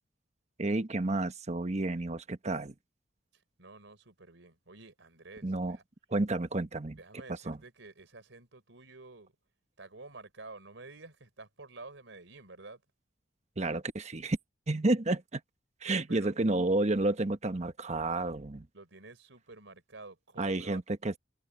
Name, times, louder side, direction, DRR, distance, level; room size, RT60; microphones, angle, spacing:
voice 1, 0.6-2.7 5.4-5.8 6.1-7.0 7.5-7.6 13.6-14.4 14.7-15.4 15.8-18.7 20.4-21.2, right 2 dB, 40° right, 1.1 m, -30 dB
voice 2, 3.3-5.8 6.9-9.3 9.8-12.8 15.8-16.4 18.7-20.8, right 3 dB, 85° right, 4.0 m, -50 dB
head